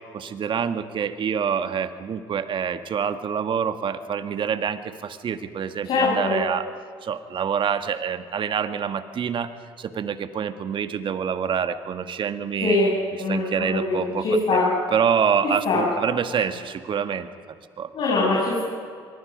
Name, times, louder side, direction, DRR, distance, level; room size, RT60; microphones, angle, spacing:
voice 1, 0.1-6.7 7.0-9.5 9.8-12.8 13.3-14.2 14.5-14.6 14.9-17.3 17.8-17.9, right 7 dB, 50° right, 10 dB, 1.6 m, -26 dB
voice 2, 5.8-6.4 12.6-14.7 15.7-15.8 17.9-18.6, left 3 dB, 55° left, -5 dB, 7.2 m, -22 dB
25.0 x 22.5 x 5.3 m, 2.2 s
supercardioid pair, 70°, 11 cm